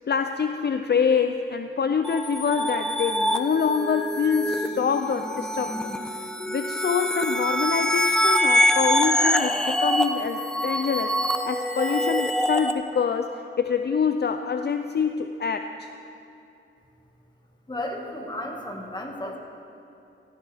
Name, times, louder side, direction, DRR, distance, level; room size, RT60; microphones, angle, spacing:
voice 1, 0.1-15.9, left 6 dB, 55° left, 7 dB, 0.5 m, -26 dB
sound 1, 2.0-12.7, equal, 5° left, 0.7 m, -25 dB
voice 2, 17.7-19.4, left 1 dB, 20° left, 0 dB, 1.8 m, -33 dB
15.0 x 15.0 x 3.5 m, 2.8 s
wide cardioid pair, 75°, 21 cm